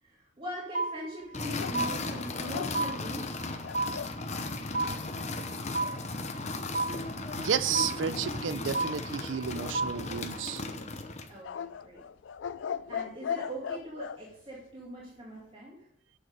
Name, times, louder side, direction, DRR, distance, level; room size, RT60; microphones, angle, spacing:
voice 1, 0.0-3.4 11.3-12.0 12.9-15.9, equal, 30° right, 2.3 m, -41 dB
sound 1, 0.7-1.5 1.7-2.5 2.7-3.5 3.7-4.5 4.7-5.5 5.7-6.5 6.7-7.5 7.7-8.5 8.7-9.5 9.7-10.5, right 3 dB, 50° right, 0.9 m, -32 dB
sound 2, 1.3-11.4, left 3 dB, 40° left, 0.9 m, -36 dB
sound 3, 1.6-4.2 9.6-10.4 11.4-14.2, left 7 dB, 75° left, 0.4 m, -38 dB
voice 2, 7.4-10.6, right 7 dB, 80° right, 0.5 m, -32 dB
9.3 x 6.7 x 5.1 m
head